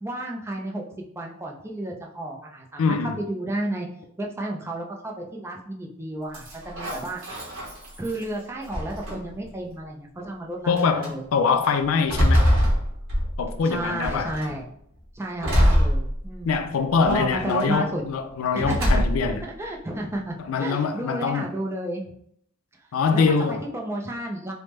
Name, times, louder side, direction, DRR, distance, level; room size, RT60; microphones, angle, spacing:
voice 1, 0.0-3.9 4.2-7.2 8.0-11.2 12.6-12.7 13.6-14.7 15.1-16.6 17.0-18.0 18.5-19.0 19.6-22.1 23.1-24.5, right 1 dB, 10° right, 0.4 m, -32 dB
voice 2, 2.8-3.2 10.7-12.4 13.4-14.3 16.4-19.4 20.5-21.5 22.9-23.6, left 5 dB, 75° left, 0.4 m, -23 dB
sound 1, 6.3-8.2 8.7-9.4 10.2-10.3 10.8-11.1 11.6-13.6 14.0-14.5 15.4-16.6 17.0-17.6 18.6-19.4, equal, 65° right, 1.0 m, -23 dB
3.3 x 2.0 x 3.0 m
head